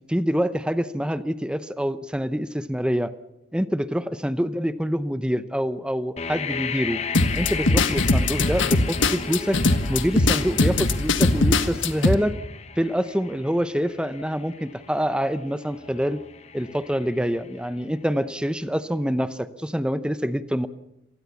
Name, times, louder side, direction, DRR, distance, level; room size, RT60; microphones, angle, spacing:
voice 1, 0.1-3.1 3.5-7.0 7.4-9.6 9.9-12.3 12.8-16.2 16.5-20.7, equal, 5° right, 13 dB, 0.7 m, -26 dB
sound 1, 6.2-18.0, left 6 dB, 35° left, 1.2 m, -36 dB
sound 2, 7.1-12.1, left 2 dB, 90° left, 1.6 m, -21 dB
26.5 x 19.0 x 7.1 m, 0.89 s
head